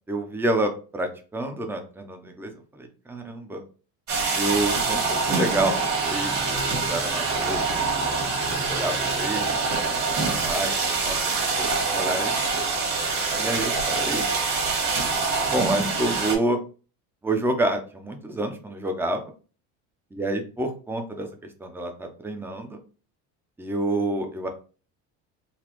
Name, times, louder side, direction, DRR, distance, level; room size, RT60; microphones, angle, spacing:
voice 1, 0.1-3.6 4.4-7.8 8.5-12.4 13.4-14.3 15.5-16.6 17.2-19.3 20.1-22.8 23.6-24.5, right 2 dB, 5° right, 4 dB, 0.6 m, -29 dB
sound 1, 4.1-16.4, right 4 dB, 45° right, 1.6 m, -25 dB
4.0 x 2.3 x 3.0 m, 0.37 s
supercardioid pair, 110°, 38 cm